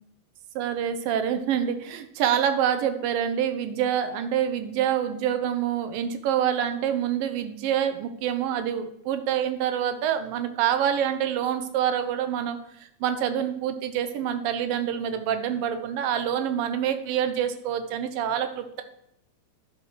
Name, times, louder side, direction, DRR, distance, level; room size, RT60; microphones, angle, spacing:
voice 1, 0.6-18.8, right 9 dB, 80° right, 8 dB, 2.7 m, -26 dB
11.0 x 7.2 x 6.3 m, 0.74 s
omnidirectional pair, 4.0 m